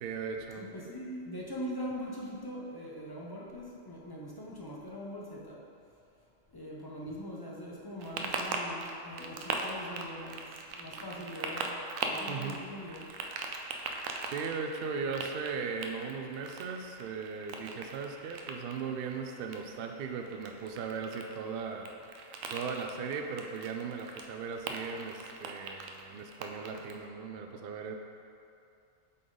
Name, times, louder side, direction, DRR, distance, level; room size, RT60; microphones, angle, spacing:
voice 1, 0.0-0.7 12.3-12.6 14.3-21.9 22.5-28.0, right 5 dB, 65° right, 3 dB, 0.6 m, -38 dB
voice 2, 0.6-5.6 6.5-10.5 10.7-13.0, equal, 30° left, -4 dB, 0.4 m, -42 dB
sound 1, 8.0-27.1, right 3 dB, 85° right, 1.0 m, -41 dB
7.6 x 3.8 x 3.9 m, 2.6 s
omnidirectional pair, 1.3 m